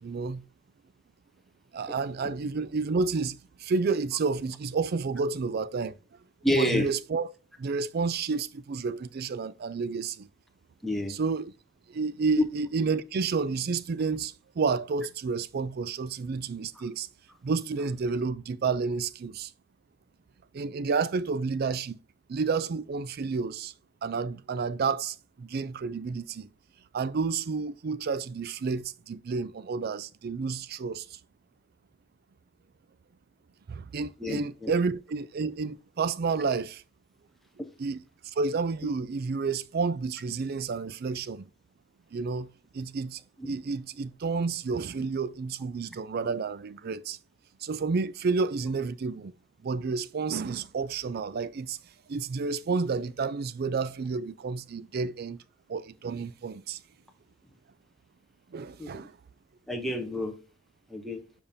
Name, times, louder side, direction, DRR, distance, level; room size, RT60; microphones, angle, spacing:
voice 1, 0.0-0.4 1.7-5.9 6.6-7.3 7.6-10.3 11.1-11.5 11.9-17.1 17.4-19.5 20.5-22.0 22.3-23.7 24.0-26.5 26.9-31.2 33.7-36.8 37.8-38.0 38.2-41.5 42.1-43.2 43.5-47.2 47.6-49.3 49.6-51.8 52.1-55.4 55.7-56.8 58.5-59.2, right 4 dB, 50° right, 0.4 m, -30 dB
voice 2, 6.4-6.9 10.8-11.2 34.2-34.7 37.6-37.7 58.8-59.0 59.7-60.4 60.9-61.2, left 1 dB, ahead, 0.6 m, -29 dB
7.1 x 5.1 x 2.6 m
head